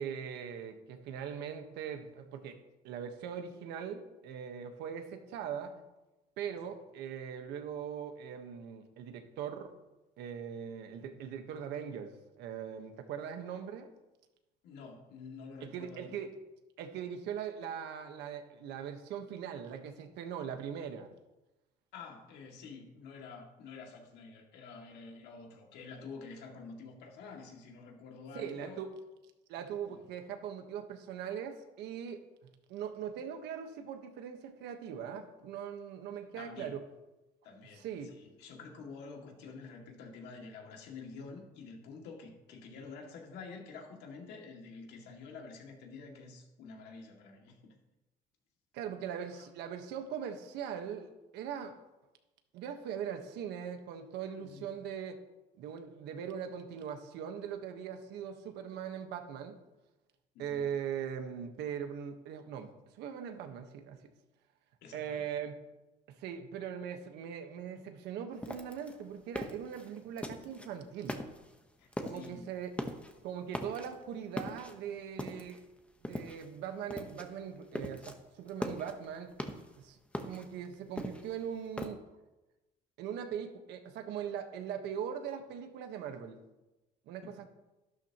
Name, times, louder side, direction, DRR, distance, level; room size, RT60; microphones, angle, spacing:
voice 1, 0.0-2.6 2.8-5.7 6.4-9.7 10.2-13.9 15.6-16.3 16.8-21.1 28.3-28.9 29.5-32.2 32.7-36.8 37.7-38.1 48.7-51.8 52.5-55.2 55.6-59.6 60.4-62.7 63.0-64.0 64.9-65.5 66.2-71.2 72.0-72.7 73.2-75.6 76.0-79.3 79.8-80.0 80.2-82.0 83.0-86.4 87.1-87.4, right 8 dB, 85° right, 7 dB, 1.4 m, -40 dB
voice 2, 14.6-16.2 21.9-28.8 29.9-30.0 36.4-36.7 37.4-47.8 49.4-49.5 54.4-54.8 60.3-60.7 64.8-65.2 71.8-72.5 87.2-87.5, left 4 dB, 85° left, 1 dB, 2.4 m, -48 dB
sound 1, 68.4-70.7 71.0-71.6 71.9-72.3 72.6-73.2 73.5-74.0 74.4-75.6 76.0-76.6 76.9-77.3 77.6-78.1 78.5-79.8 80.1-81.9, left 1 dB, 5° left, 1.2 m, -40 dB
12.0 x 12.0 x 3.0 m, 1.0 s
cardioid pair, 110°, 17 cm